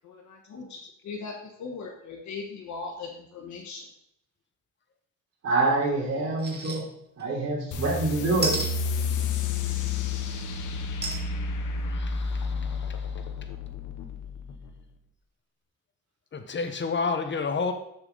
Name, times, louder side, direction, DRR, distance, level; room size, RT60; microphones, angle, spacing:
voice 1, 0.0-0.8 1.0-3.8, left 4 dB, 70° left, -1 dB, 1.5 m, -39 dB
voice 2, 5.4-6.8 7.2-8.6, right 2 dB, 60° right, -3 dB, 3.3 m, -26 dB
sound 1, 6.4-6.8 7.2-7.3 8.4-8.7 11.0-11.2 11.8-11.9 12.2-12.3, right 2 dB, 35° right, 2.1 m, -30 dB
sound 2, 7.7-14.8, left 4 dB, 85° left, 1.0 m, -31 dB
voice 3, 11.8-13.3 16.3-17.7, left 4 dB, 40° left, 7 dB, 1.1 m, -31 dB
7.0 x 6.9 x 3.9 m, 0.75 s
cardioid pair, 90°, 30 cm